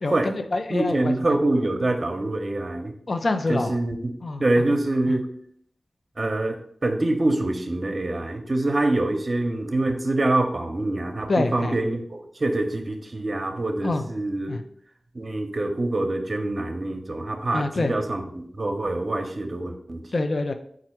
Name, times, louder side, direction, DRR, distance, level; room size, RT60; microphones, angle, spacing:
voice 1, 0.0-1.1 3.1-3.7 4.2-4.4 4.7-4.8 5.1-5.2 11.3-11.8 13.8-14.0 14.5-14.6 17.5-17.9 20.1-20.5, left 2 dB, 65° left, 7 dB, 0.4 m, -26 dB
voice 2, 0.7-2.9 3.5-4.1 4.4-5.3 6.2-14.6 15.1-20.0, right 2 dB, 50° right, 5 dB, 0.7 m, -25 dB
4.3 x 2.5 x 4.4 m, 0.64 s
cardioid pair, 50°, 0 cm